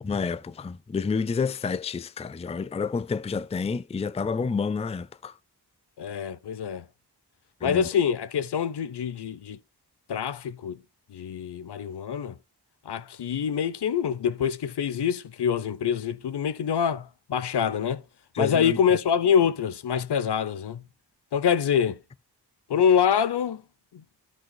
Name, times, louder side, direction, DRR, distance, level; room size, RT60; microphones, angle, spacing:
voice 1, 0.0-5.3 7.6-7.8 18.3-18.8, left 5 dB, 15° left, 0.3 m, -29 dB
voice 2, 6.0-6.8 7.6-9.6 10.1-10.8 11.1-12.4 12.9-18.0 18.4-20.8 21.3-22.0 22.7-23.6 23.9-24.0, left 7 dB, 80° left, 0.7 m, -25 dB
14.0 x 5.4 x 2.2 m
wide cardioid pair, 95°, 40 cm